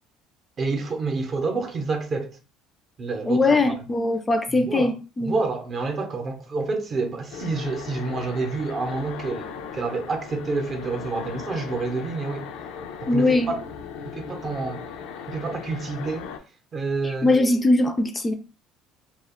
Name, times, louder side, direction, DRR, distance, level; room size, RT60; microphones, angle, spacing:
voice 1, 0.6-2.4 3.0-3.7 4.5-4.9 5.2-12.5 13.0-13.6 14.0-14.8 15.3-16.3 16.7-17.3, right 3 dB, 40° right, 0.7 m, -28 dB
voice 2, 3.3-5.4 13.1-13.5 17.0-18.3, left 2 dB, 20° left, 0.4 m, -21 dB
sound 1, 7.3-16.4, left 6 dB, 80° left, 0.4 m, -38 dB
2.2 x 2.0 x 3.5 m
supercardioid pair, 95°, 0 cm